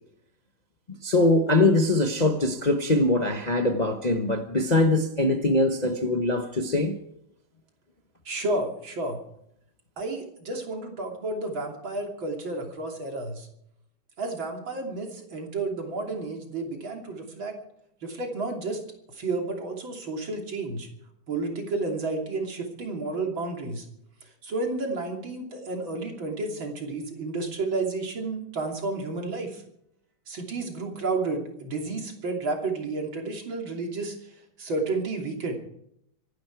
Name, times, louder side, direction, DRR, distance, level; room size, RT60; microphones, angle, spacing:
voice 1, 1.0-7.0, left 2 dB, 30° left, 0.8 m, -22 dB
voice 2, 8.3-9.2 10.0-13.5 14.2-17.6 18.0-18.8 19.1-20.9 21.3-23.9 24.2-29.6 30.3-35.5, right 3 dB, 70° right, 3.7 m, -31 dB
24.5 x 11.5 x 4.7 m
omnidirectional pair, 2.2 m